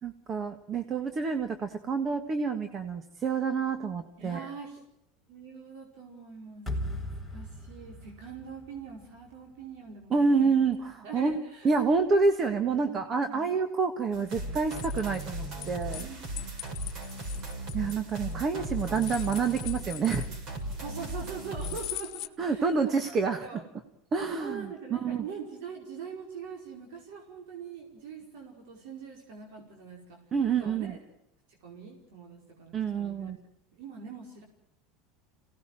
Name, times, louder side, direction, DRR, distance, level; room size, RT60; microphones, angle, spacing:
voice 1, 0.0-4.5 10.1-11.4 11.6-16.1 17.7-20.3 22.4-23.6 24.1-25.2 30.3-30.9 32.7-33.4, right 4 dB, 30° right, 8 dB, 1.6 m, -28 dB
voice 2, 4.2-4.8 5.3-10.5 11.0-11.7 12.7-13.6 16.0-16.4 18.4-18.5 20.8-23.1 23.4-23.6 24.3-30.2 30.5-31.0 31.5-33.3 33.7-34.4, right 6 dB, 75° right, 0 dB, 5.2 m, -43 dB
sound 1, 6.7-9.8, left 1 dB, 10° right, 4.5 m, -38 dB
sound 2, 14.1-22.0, right 1 dB, 50° right, 6.9 m, -37 dB
sound 3, 14.7-16.1 16.4-18.3 18.8-20.6 21.6-22.3, left 16 dB, 45° left, 1.5 m, -41 dB
26.5 x 18.0 x 7.6 m, 0.83 s
supercardioid pair, 130°, 0 cm